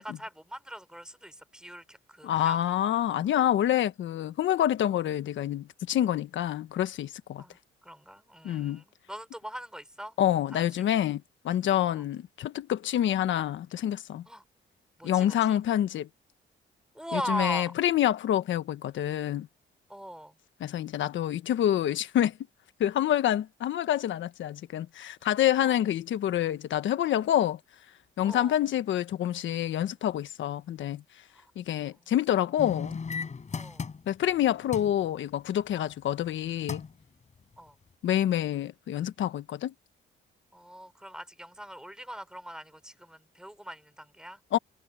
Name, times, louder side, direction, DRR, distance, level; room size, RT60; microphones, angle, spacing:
voice 1, 0.0-2.6 7.4-7.6 7.8-10.1 10.5-11.0 11.9-12.0 14.3-14.4 15.0-15.6 16.9-17.7 19.9-20.3 25.6-25.8 28.2-28.6 31.9-32.0 33.5-33.9 37.6-37.7 40.5-44.4, equal, 5° right, 4.5 m, -40 dB
voice 2, 2.2-7.4 8.4-8.8 10.2-14.2 15.0-16.1 17.1-19.5 20.6-22.3 22.8-27.6 28.2-31.0 31.6-33.0 34.1-36.8 38.0-39.7 44.5-44.6, left 11 dB, 70° left, 1.4 m, -27 dB
sound 1, 32.6-34.3 34.7-35.0 36.3-36.4 36.7-37.0 37.5-37.6, left 5 dB, 35° left, 5.2 m, -36 dB
cardioid pair, 90°, 20 cm